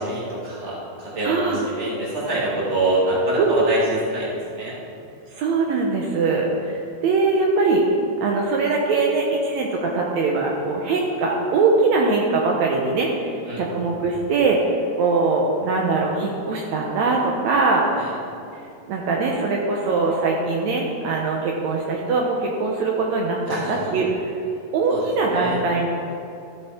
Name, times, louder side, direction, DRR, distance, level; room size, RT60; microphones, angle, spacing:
voice 1, 0.0-3.8 4.1-4.7 13.5-13.6 18.0-18.1 23.5-23.9 24.9-25.0 25.3-25.6, right 2 dB, 25° right, -6 dB, 1.8 m, -25 dB
voice 2, 1.2-1.6 3.4-3.6 5.3-7.8 8.2-14.6 15.0-17.8 18.9-24.1 24.7-25.9, right 3 dB, 90° right, -1 dB, 1.6 m, -22 dB
13.5 x 7.9 x 4.4 m, 2.6 s
omnidirectional pair, 4.4 m